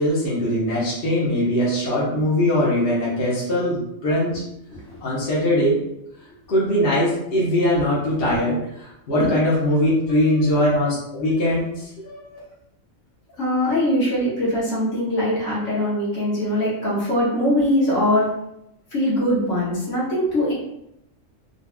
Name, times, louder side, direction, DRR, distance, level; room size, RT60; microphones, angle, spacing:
voice 1, 0.0-4.4 5.0-5.8 6.5-12.2, left 1 dB, 50° left, -8 dB, 1.1 m, -21 dB
voice 2, 4.7-5.0 7.9-8.4 9.2-9.3 13.4-18.3 18.9-20.5, left 1 dB, 65° left, -7 dB, 1.8 m, -22 dB
4.0 x 3.1 x 2.2 m, 0.82 s
omnidirectional pair, 1.4 m